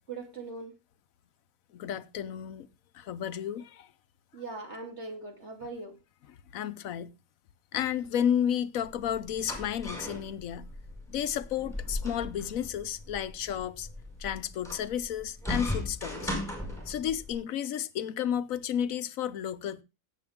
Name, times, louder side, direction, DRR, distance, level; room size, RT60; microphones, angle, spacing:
voice 1, 0.1-0.7 4.3-5.9, right 3 dB, 55° right, 2.9 m, -40 dB
voice 2, 1.7-2.7 2.9-3.9 6.5-7.1 7.7-10.7 11.1-13.9 14.2-16.3 16.9-19.8, left 9 dB, 80° left, 1.2 m, -32 dB
sound 1, 8.9-17.3, left 1 dB, ahead, 5.4 m, -38 dB
17.5 x 7.9 x 3.6 m
omnidirectional pair, 1.4 m